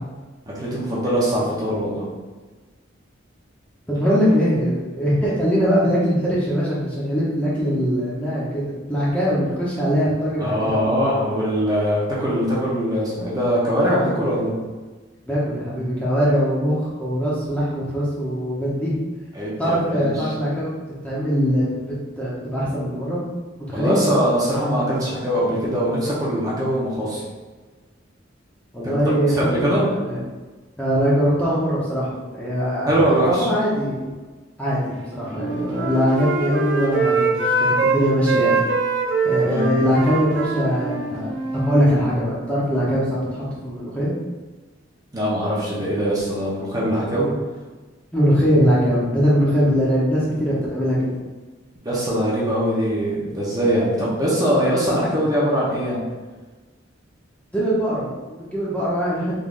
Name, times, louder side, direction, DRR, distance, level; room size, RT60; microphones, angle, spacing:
voice 1, 0.5-2.1 10.4-14.5 19.3-20.3 23.7-27.2 28.8-28.9 29.3-29.8 32.9-33.5 39.4-39.7 45.1-47.3 51.8-56.0, equal, 20° right, -6 dB, 0.8 m, -22 dB
voice 2, 3.9-10.9 15.3-18.9 19.6-20.7 21.0-23.2 23.7-24.0 25.5-25.6 28.7-30.2 30.8-34.1 34.6-38.6 39.2-44.1 48.1-51.1 57.5-59.3, equal, 5° left, -8 dB, 0.8 m, -22 dB
Wind instrument woodwind instrument, 35.2-38.0 38.2-41.9, right 3 dB, 70° right, 0.5 m, -23 dB
3.7 x 3.3 x 2.5 m, 1.3 s
head